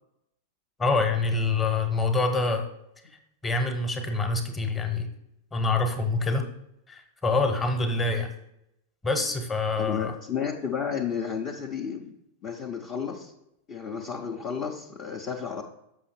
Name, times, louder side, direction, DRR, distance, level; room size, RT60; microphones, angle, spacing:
voice 1, 0.8-2.7 3.4-5.1 5.5-6.5 6.9-8.3 9.0-10.1, left 3 dB, 15° left, 6 dB, 1.1 m, -26 dB
voice 2, 9.8-12.1 12.4-13.3 13.7-15.6, left 7 dB, 30° left, -1 dB, 0.8 m, -32 dB
7.2 x 5.8 x 4.3 m, 0.81 s
figure-of-eight pair, 90°, 0 cm